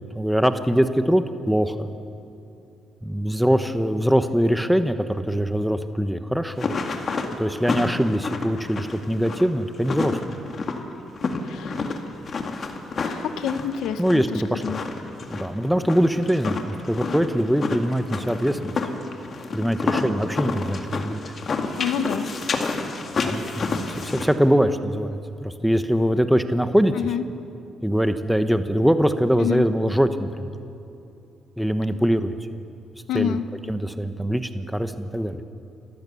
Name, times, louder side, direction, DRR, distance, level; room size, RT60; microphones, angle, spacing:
voice 1, 0.1-1.9 3.0-6.7 7.3-10.4 14.0-14.8 15.3-18.7 19.5-21.3 23.2-26.9 27.8-30.6 31.6-32.6 33.1-33.4 33.7-35.4, equal, ahead, 9 dB, 1.0 m, -23 dB
sound 1, 6.5-24.3, left 4 dB, 45° left, 2.1 m, -29 dB
voice 2, 11.4-12.0 12.9-14.2 14.5-14.8 21.8-22.3 26.9-27.2 29.4-29.6 33.1-33.4, left 8 dB, 85° left, 11 dB, 1.0 m, -27 dB
27.0 x 15.0 x 7.0 m, 2.7 s
cardioid pair, 90°, 0 cm